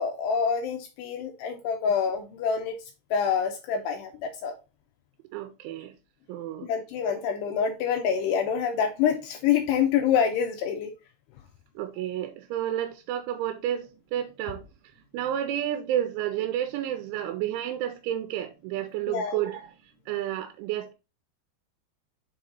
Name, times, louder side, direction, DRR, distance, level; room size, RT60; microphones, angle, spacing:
voice 1, 0.0-2.8 3.1-4.5 6.6-10.9 19.1-19.4, left 7 dB, 80° left, 2.5 m, -26 dB
voice 2, 5.3-5.9 6.3-6.7 11.8-14.6 15.1-19.7 20.1-20.9, right 11 dB, 90° right, 3.1 m, -31 dB
6.8 x 4.0 x 4.2 m
omnidirectional pair, 5.3 m